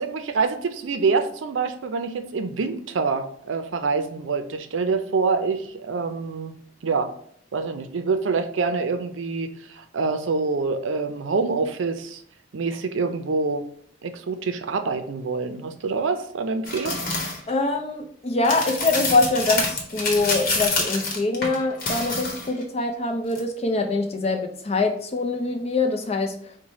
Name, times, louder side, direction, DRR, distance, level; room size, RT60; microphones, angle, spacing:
voice 1, 0.0-6.5 6.8-7.1 7.5-12.2 12.5-13.6 14.0-17.0, right 4 dB, 85° right, 8 dB, 0.5 m, -26 dB
sound 1, 16.6-17.4 18.4-22.6 23.3-23.4, left 3 dB, 50° left, 1.0 m, -27 dB
voice 2, 17.5-26.3, left 3 dB, 35° left, 5 dB, 0.5 m, -24 dB
4.8 x 2.2 x 4.0 m, 0.63 s
head